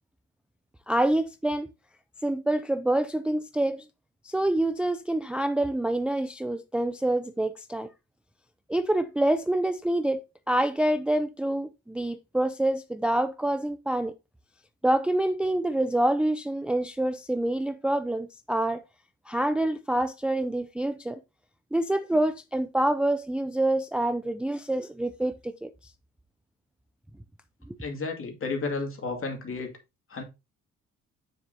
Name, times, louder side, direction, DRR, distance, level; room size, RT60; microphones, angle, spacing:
voice 1, 0.9-1.7 2.2-3.9 4.2-7.9 8.7-10.2 10.5-14.1 14.8-18.8 19.3-21.2 21.7-25.7 27.7-27.8, right 1 dB, 5° right, 0.4 m, -26 dB
voice 2, 27.8-29.7 30.1-30.2, left 3 dB, 45° left, 2.3 m, -32 dB
7.1 x 6.4 x 2.7 m
cardioid pair, 90°, 30 cm